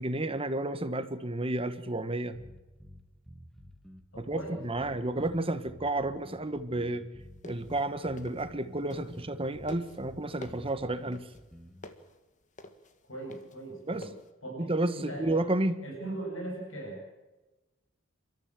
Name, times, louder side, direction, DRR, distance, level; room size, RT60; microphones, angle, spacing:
voice 1, 0.0-2.3 4.2-7.0 7.4-11.3 13.9-14.1 14.6-15.8, right 2 dB, 25° right, 11 dB, 1.3 m, -31 dB
sound 1, 2.3-11.9, equal, ahead, 1.6 m, -51 dB
voice 2, 4.1-4.9 13.1-14.1 14.4-14.7 14.9-15.4 15.8-17.0, right 2 dB, 75° left, 1 dB, 7.3 m, -39 dB
sound 2, 7.3-9.4 9.7-14.3, left 2 dB, 40° left, 1.6 m, -49 dB
29.0 x 13.5 x 7.5 m, 1.1 s
head